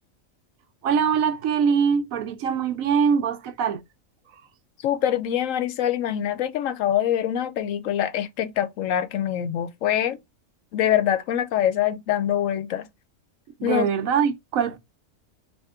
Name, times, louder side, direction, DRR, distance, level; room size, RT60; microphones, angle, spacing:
voice 1, 0.8-3.8 13.6-14.8, right 7 dB, 90° right, 1.2 m, -23 dB
voice 2, 4.8-10.2 10.7-12.8 13.6-13.9, left 10 dB, 75° left, 1.0 m, -24 dB
4.3 x 2.9 x 3.6 m
omnidirectional pair, 1.4 m